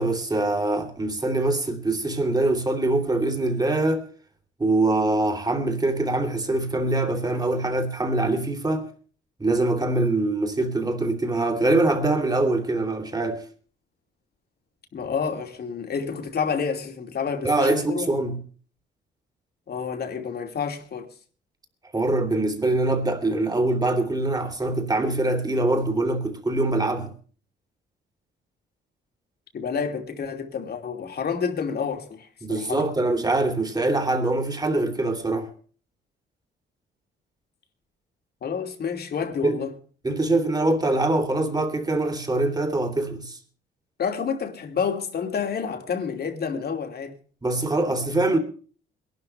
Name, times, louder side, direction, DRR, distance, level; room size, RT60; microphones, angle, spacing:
voice 1, 0.0-4.0 4.6-8.9 9.4-13.4 17.4-18.4 21.9-27.1 32.4-35.5 39.4-39.6 40.0-43.4 47.4-48.4, right 2 dB, 20° right, 3.1 m, -23 dB
voice 2, 14.9-18.1 19.7-21.1 29.5-32.8 38.4-39.7 44.0-47.1, left 6 dB, 55° left, 2.7 m, -29 dB
22.5 x 12.0 x 3.3 m
cardioid pair, 90°, 20 cm